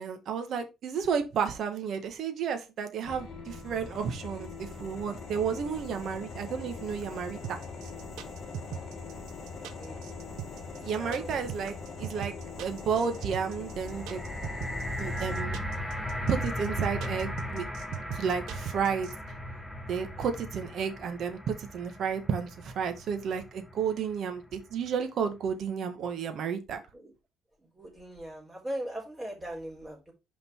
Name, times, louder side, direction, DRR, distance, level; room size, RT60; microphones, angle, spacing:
voice 1, 0.0-7.6 10.8-12.3 12.6-14.2 15.0-15.6 16.3-17.6 18.1-19.1 19.9-26.8, right 6 dB, 55° right, 1.6 m, -32 dB
sound 1, 3.0-15.4, left 4 dB, 45° left, 1.7 m, -42 dB
sound 2, 7.4-19.1, right 10 dB, 90° right, 1.1 m, -40 dB
voice 2, 11.0-11.4 20.2-20.3 26.9-27.1 27.7-30.1, right 1 dB, 15° right, 4.2 m, -39 dB
sound 3, 13.7-23.9 24.7-24.8, equal, 5° left, 1.3 m, -37 dB
5.9 x 5.3 x 4.6 m
cardioid pair, 140°, 0 cm